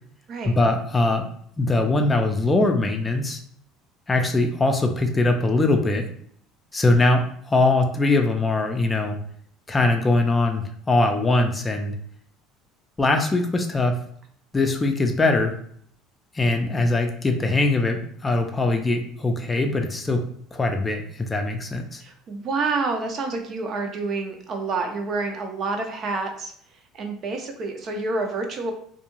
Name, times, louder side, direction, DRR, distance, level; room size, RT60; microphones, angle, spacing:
voice 1, 0.4-1.2 1.6-3.4 4.1-6.1 6.7-9.2 9.7-11.9 13.0-13.9 14.5-15.5 16.3-20.2 20.5-22.0, left 2 dB, 20° left, 4 dB, 0.4 m, -21 dB
voice 2, 22.0-26.5 26.9-28.7, right 3 dB, 50° right, 4 dB, 0.6 m, -28 dB
2.4 x 2.2 x 3.0 m, 0.62 s
supercardioid pair, 90°, 0 cm